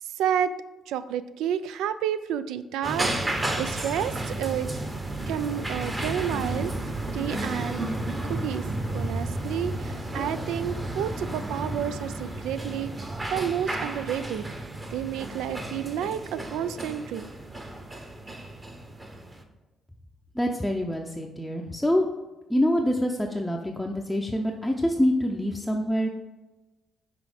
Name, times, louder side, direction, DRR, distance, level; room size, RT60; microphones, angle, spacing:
voice 1, 0.2-0.5 0.9-4.7 5.3-7.8 8.2-8.6 8.9-14.4 14.9-17.3, right 9 dB, 90° right, 13 dB, 0.3 m, -30 dB
sound 1, 2.8-19.4, right 1 dB, 20° right, 0.9 m, -32 dB
voice 2, 20.3-22.1 22.5-26.1, equal, 5° left, 0 dB, 0.5 m, -25 dB
6.1 x 4.3 x 4.9 m, 1.1 s
cardioid pair, 90°, 0 cm